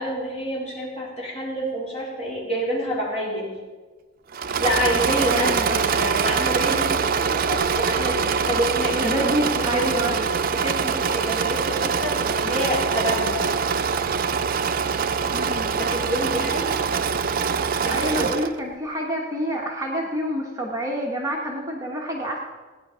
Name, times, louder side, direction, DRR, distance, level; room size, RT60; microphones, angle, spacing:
voice 1, 0.0-3.6 4.6-13.4 15.8-16.9 17.8-18.3, equal, 30° left, -5 dB, 4.2 m, -28 dB
Engine / Mechanisms, 4.3-18.6, right 6 dB, 45° right, 0.5 m, -24 dB
voice 2, 5.3-5.8 8.9-10.1 15.3-15.7 17.9-22.4, equal, 15° right, -2 dB, 1.3 m, -27 dB
16.5 x 9.9 x 5.6 m, 1.4 s
head